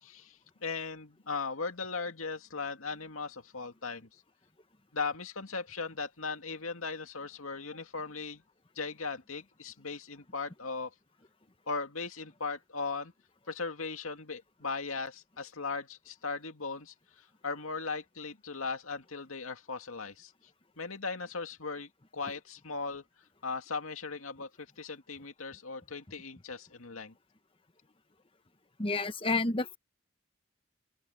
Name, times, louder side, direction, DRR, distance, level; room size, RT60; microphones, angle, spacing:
voice 1, 0.0-4.1 4.9-8.4 8.8-10.9 11.7-13.1 13.5-20.3 20.8-23.0 23.4-27.1, left 4 dB, 85° left, 2.3 m, -38 dB
voice 2, 28.8-29.8, left 3 dB, 25° left, 1.1 m, -30 dB
open air
head